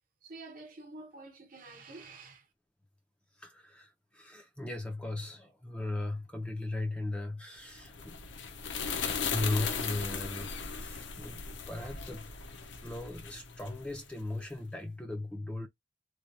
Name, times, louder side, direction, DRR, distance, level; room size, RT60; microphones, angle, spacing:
voice 1, 0.2-2.5, right 3 dB, 50° right, 1.0 m, -48 dB
voice 2, 3.3-8.2 9.3-10.5 10.8-15.7, left 2 dB, 5° left, 0.4 m, -37 dB
sound 1, 7.7-14.3, left 5 dB, 75° left, 0.6 m, -37 dB
3.2 x 2.2 x 2.5 m
head